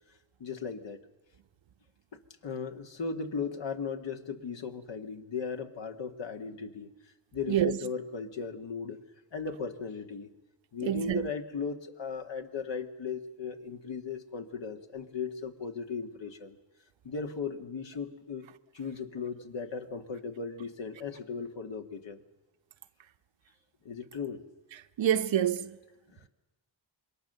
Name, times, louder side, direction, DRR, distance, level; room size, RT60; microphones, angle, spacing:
voice 1, 0.4-1.0 2.1-6.9 7.3-9.0 9.3-10.3 10.7-16.6 17.0-18.5 18.7-22.2 23.9-24.4 26.1-26.3, left 5 dB, 75° left, 2.0 m, -37 dB
voice 2, 10.8-11.3 25.0-25.8, right 10 dB, 85° right, 1.0 m, -27 dB
26.5 x 22.0 x 6.8 m
cardioid pair, 80°, 44 cm